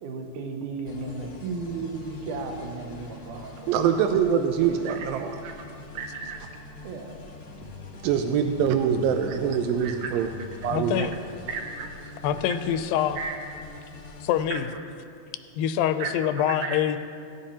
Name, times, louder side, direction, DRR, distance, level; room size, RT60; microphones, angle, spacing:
voice 1, 0.0-3.8 4.6-5.1 5.4-5.5 5.9-6.4 6.8-7.2 9.8-10.1 11.5-11.9 13.2-13.4 14.5-14.6 16.0-16.1 16.5-17.0, right 4 dB, 70° right, 3 dB, 2.3 m, -34 dB
sound 1, 0.8-14.4, left 3 dB, 55° left, 1.4 m, -44 dB
voice 2, 3.7-5.3 8.0-10.3 10.6-11.1, right 7 dB, 85° right, 6 dB, 2.3 m, -24 dB
voice 3, 10.7-11.1 12.2-13.2 14.2-14.7 15.6-17.0, left 10 dB, 90° left, 10 dB, 2.3 m, -25 dB
17.5 x 10.0 x 2.9 m, 2.4 s
omnidirectional pair, 4.0 m